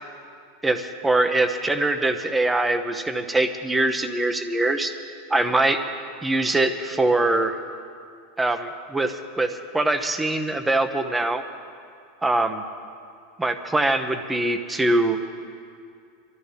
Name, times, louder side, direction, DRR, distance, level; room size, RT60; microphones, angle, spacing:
voice 1, 0.6-4.9 5.3-5.8 6.2-7.6 8.4-11.4 12.2-12.6 13.4-15.2, right 2 dB, 10° right, 8 dB, 1.0 m, -23 dB
23.0 x 14.0 x 3.5 m, 2.4 s
hypercardioid pair, 105°, 0 cm